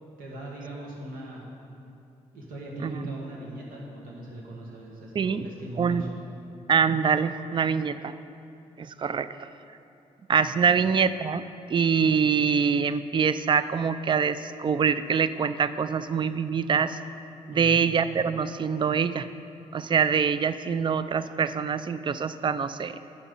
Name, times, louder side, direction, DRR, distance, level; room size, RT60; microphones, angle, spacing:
voice 1, 0.2-1.4 2.3-6.1 10.6-10.8 17.5-17.9, right 1 dB, 80° right, -3 dB, 1.7 m, -39 dB
voice 2, 5.1-5.5 5.8-6.0 6.7-8.1 8.8-9.5 10.3-11.4 11.7-17.0 17.5-19.3 19.7-23.0, right 6 dB, 35° right, 13 dB, 0.4 m, -24 dB
8.7 x 5.9 x 5.4 m, 2.6 s
supercardioid pair, 50°, 15 cm